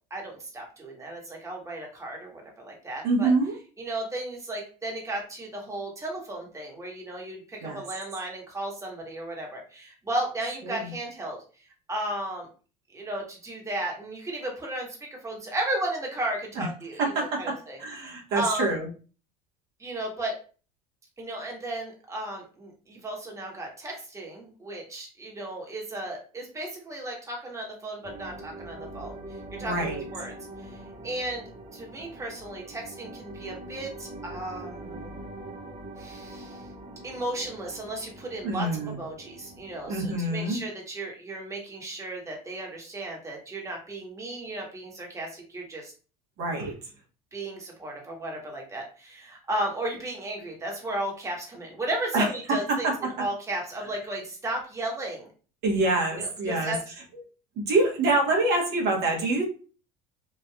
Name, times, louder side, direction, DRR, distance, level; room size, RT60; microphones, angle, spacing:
voice 1, 0.1-3.3 3.8-11.4 11.9-12.5 12.9-15.0 15.2-18.7 19.8-20.3 21.2-30.3 30.6-30.8 31.0-31.4 31.7-35.1 36.0-36.7 37.0-40.0 40.3-45.9 47.3-52.9 53.2-55.3 56.1-56.8, right 1 dB, 15° right, 0 dB, 1.1 m, -34 dB
voice 2, 3.0-3.5 7.6-7.8 10.6-10.9 16.6-16.7 17.0-18.9 29.6-30.0 38.4-39.0 39.9-40.6 46.4-46.8 52.1-52.3 52.7-53.1 55.6-56.7 57.6-59.4, right 2 dB, 60° right, 0 dB, 1.1 m, -26 dB
sound 1, 28.0-40.2, right 1 dB, 30° right, 0.7 m, -43 dB
3.3 x 2.4 x 2.3 m, 0.37 s
hypercardioid pair, 80°, 19 cm